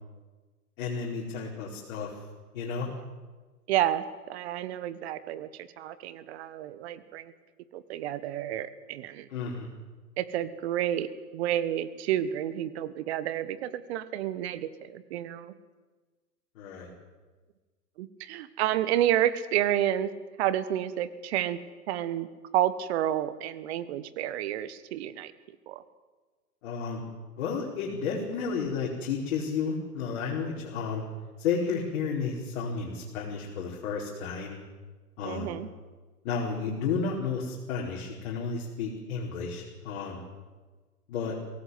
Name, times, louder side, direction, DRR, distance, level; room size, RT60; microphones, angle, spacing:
voice 1, 0.8-2.2 2.5-2.9 9.3-9.7 16.5-16.9 26.6-27.0 27.4-31.0 31.4-34.6 35.2-35.5 36.2-40.2 41.1-41.3, left 5 dB, 45° left, -3 dB, 4.8 m, -32 dB
voice 2, 3.7-7.3 7.7-9.3 10.2-15.5 18.0-20.1 20.4-21.6 21.9-22.3 22.5-25.3 25.7-25.8 35.2-35.7, right 12 dB, 40° right, 14 dB, 1.5 m, -30 dB
22.5 x 18.0 x 8.1 m, 1.3 s
figure-of-eight pair, 120°, 48 cm